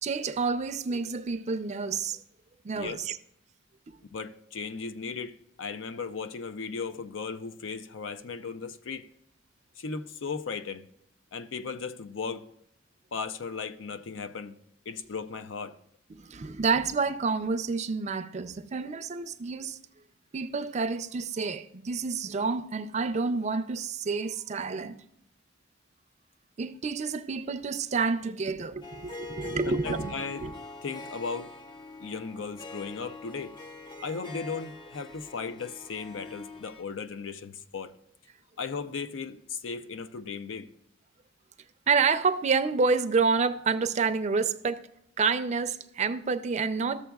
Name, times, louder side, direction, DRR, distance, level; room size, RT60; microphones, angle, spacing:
voice 1, 0.0-2.2 2.6-3.2 3.9-4.0 16.1-19.8 20.3-25.0 26.6-30.5 41.9-44.8 45.2-47.0, right 4 dB, 35° right, 0.4 m, -29 dB
voice 2, 4.1-9.1 9.8-10.9 11.3-12.5 13.1-14.6 14.9-15.8 29.7-30.5 30.8-31.5 32.0-33.6 34.0-37.9 38.6-40.7, left 5 dB, 80° left, 0.5 m, -36 dB
Harp, 28.8-36.8, left 2 dB, 25° left, 0.5 m, -43 dB
13.5 x 6.9 x 2.3 m
head